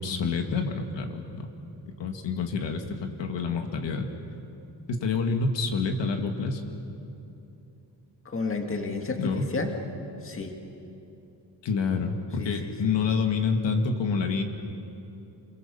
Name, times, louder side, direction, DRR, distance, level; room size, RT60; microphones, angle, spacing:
voice 1, 0.0-1.5 2.0-4.1 4.9-6.6 9.2-9.5 11.6-14.4, left 4 dB, 80° left, 4 dB, 2.1 m, -27 dB
voice 2, 8.3-9.7 10.2-10.6 12.4-12.7, left 3 dB, 30° left, 4 dB, 1.9 m, -31 dB
28.0 x 22.5 x 7.0 m, 2.9 s
wide cardioid pair, 170°, 43 cm